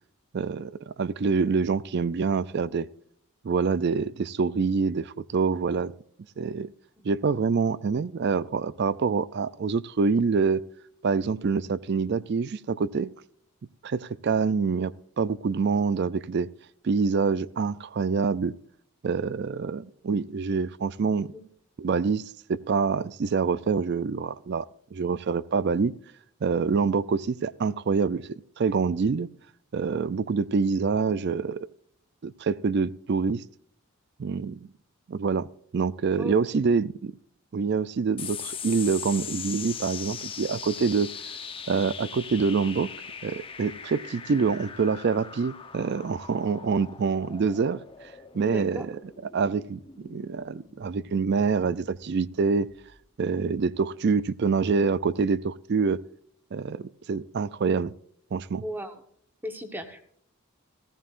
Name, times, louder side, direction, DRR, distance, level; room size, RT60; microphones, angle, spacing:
voice 1, 0.3-2.9 3.4-5.9 6.4-6.7 7.0-10.7 11.0-13.1 13.8-16.5 16.8-18.5 19.0-21.3 21.8-25.9 26.4-28.3 28.6-29.3 29.7-31.7 32.2-33.4 34.2-34.6 35.1-35.5 35.7-37.1 37.5-41.1 41.7-42.9 43.2-47.8 48.3-52.7 53.2-56.0 56.5-57.9 58.3-58.6, right 5 dB, 50° right, 0.4 m, -26 dB
sound 1, 38.2-53.0, left 7 dB, 25° left, 0.8 m, -41 dB
voice 2, 48.4-48.9 58.6-59.0 59.4-60.1, equal, 10° right, 1.1 m, -36 dB
15.0 x 14.5 x 2.5 m
head